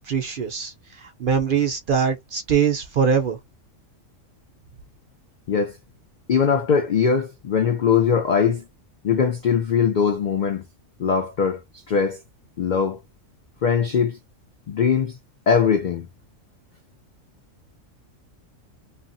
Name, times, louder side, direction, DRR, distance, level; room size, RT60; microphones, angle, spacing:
voice 1, 0.0-3.4, right 7 dB, 55° right, 0.6 m, -23 dB
voice 2, 6.3-8.6 9.0-10.6 11.0-11.6 11.9-12.2 12.6-13.0 13.6-14.2 14.7-15.2 15.5-16.1, left 6 dB, 75° left, 0.4 m, -21 dB
2.8 x 2.3 x 2.6 m
omnidirectional pair, 1.4 m